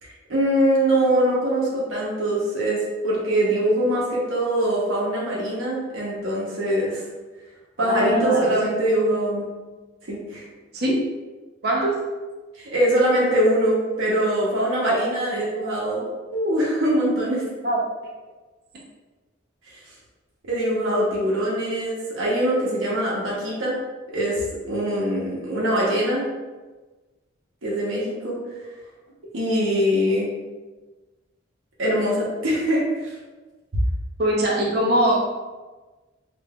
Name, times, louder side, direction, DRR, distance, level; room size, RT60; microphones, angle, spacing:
voice 1, 0.0-7.0 7.8-9.4 10.1-10.4 12.5-16.0 16.3-17.4 19.7-19.8 20.5-23.7 24.1-26.3 27.6-28.4 29.3-30.3 31.8-33.1, right 1 dB, 90° right, -5 dB, 0.9 m, -23 dB
voice 2, 7.8-8.7 9.0-9.1 10.7-11.0 11.6-12.0 14.8-15.0 15.3-15.8 17.6-17.8 34.2-35.2, right 1 dB, 50° right, -2 dB, 0.7 m, -22 dB
5.2 x 2.5 x 2.3 m, 1.2 s
head